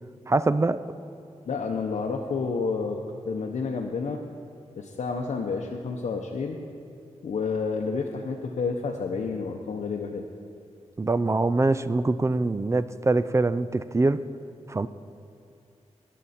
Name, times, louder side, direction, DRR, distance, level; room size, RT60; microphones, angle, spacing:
voice 1, 0.3-0.8 11.0-14.2 14.7-14.9, right 2 dB, 25° right, 14 dB, 0.4 m, -24 dB
voice 2, 1.5-3.0 3.3-4.2 4.8-6.6 7.2-10.3, left 4 dB, 80° left, 0 dB, 0.8 m, -30 dB
18.5 x 7.5 x 4.2 m, 2.5 s
wide cardioid pair, 80°, 12 cm